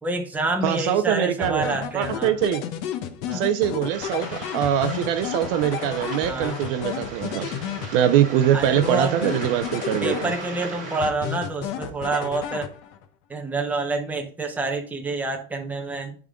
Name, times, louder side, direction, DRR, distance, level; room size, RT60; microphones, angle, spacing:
voice 1, 0.0-2.3 3.3-3.4 6.2-6.6 8.5-9.4 10.0-12.7 13.3-16.2, right 2 dB, 5° right, 3 dB, 0.7 m, -28 dB
voice 2, 0.6-2.6 3.3-7.5 7.9-10.3, right 10 dB, 45° right, 11 dB, 0.5 m, -23 dB
sound 1, 1.4-8.3 8.6-10.6 11.0-13.1, left 9 dB, 40° left, 0.9 m, -32 dB
Waves surf, 3.9-11.1, right 3 dB, 20° right, 3.6 m, -37 dB
10.0 x 3.7 x 3.6 m, 0.42 s
supercardioid pair, 160°, 39 cm